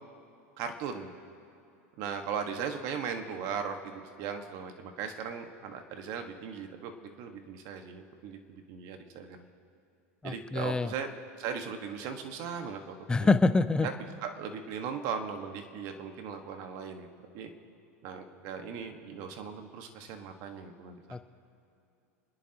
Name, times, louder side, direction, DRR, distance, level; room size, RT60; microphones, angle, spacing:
voice 1, 0.6-1.1 2.0-9.5 10.2-11.1 11.4-13.3 13.8-13.9 14.2-17.1 17.3-17.5 18.0-20.9, right 6 dB, 55° right, 5 dB, 1.6 m, -38 dB
voice 2, 10.2-10.9 13.1-13.9 21.1-21.2, left 3 dB, 10° left, 12 dB, 0.6 m, -25 dB
29.5 x 10.5 x 3.0 m, 2.7 s
hypercardioid pair, 105°, 8 cm